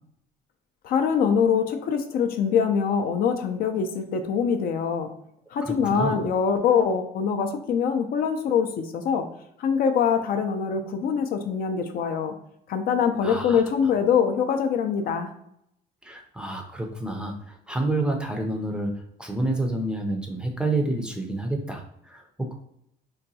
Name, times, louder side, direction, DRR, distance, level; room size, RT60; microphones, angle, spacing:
voice 1, 0.8-5.1 5.5-9.3 9.6-12.4 12.7-15.3, left 7 dB, 60° left, 6 dB, 0.4 m, -24 dB
voice 2, 5.6-6.2 13.2-13.6 16.0-18.9 19.2-22.5, right 2 dB, 5° right, 2 dB, 0.5 m, -29 dB
3.8 x 2.2 x 2.7 m, 0.74 s
cardioid pair, 110°, 17 cm